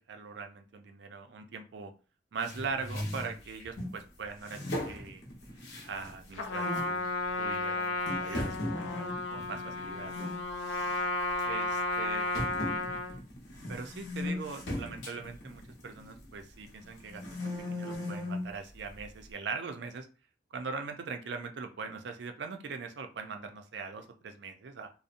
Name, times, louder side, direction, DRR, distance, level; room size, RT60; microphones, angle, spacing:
voice 1, 0.0-1.9 2.3-5.2 5.9-7.1 7.4-10.3 11.4-12.3 13.7-20.1 20.5-24.9, right 5 dB, 70° right, 6 dB, 0.4 m, -41 dB
sound 1, 2.4-4.0 4.4-6.2 6.5-6.9 7.5-7.6 8.1-10.4 10.7-11.0 11.4-11.5 12.3-16.3 16.8-18.5, left 1 dB, 60° left, 0.8 m, -38 dB
Trumpet, 6.3-13.2, left 2 dB, 85° left, 0.4 m, -33 dB
2.7 x 2.0 x 2.5 m, 0.34 s
head